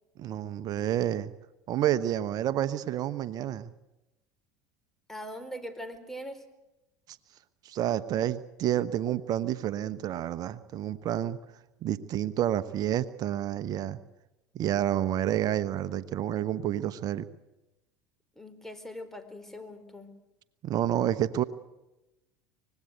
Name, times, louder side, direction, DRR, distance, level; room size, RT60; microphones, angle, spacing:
voice 1, 0.2-1.3 1.7-3.7 7.1-7.2 7.6-11.4 11.8-14.0 14.5-17.3 20.6-21.4, right 11 dB, 50° right, 14 dB, 1.1 m, -29 dB
voice 2, 5.1-6.4 18.4-20.1, equal, 5° left, 7 dB, 4.2 m, -41 dB
25.0 x 20.5 x 8.1 m, 0.99 s
hypercardioid pair, 80°, 8 cm